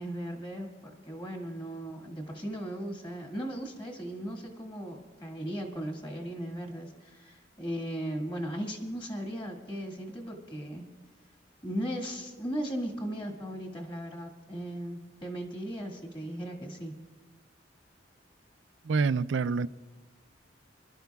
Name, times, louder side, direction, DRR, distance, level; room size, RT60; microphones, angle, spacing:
voice 1, 0.0-10.8 11.6-16.9, equal, 25° left, 2.0 m, -37 dB
voice 2, 18.8-19.7, right 4 dB, 80° right, 0.4 m, -26 dB
25.5 x 12.0 x 2.3 m
head